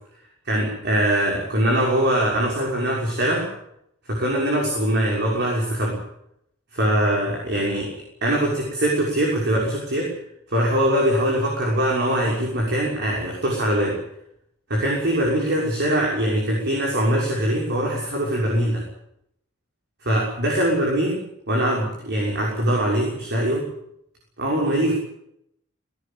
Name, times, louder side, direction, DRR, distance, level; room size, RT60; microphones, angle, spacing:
voice 1, 0.5-3.5 4.1-6.0 6.7-7.9 8.2-10.1 10.5-14.0 14.7-18.8 20.0-21.2 21.5-23.7 24.4-24.9, right 1 dB, 55° right, -2 dB, 6.2 m, -22 dB
19.0 x 19.0 x 8.8 m, 0.77 s
head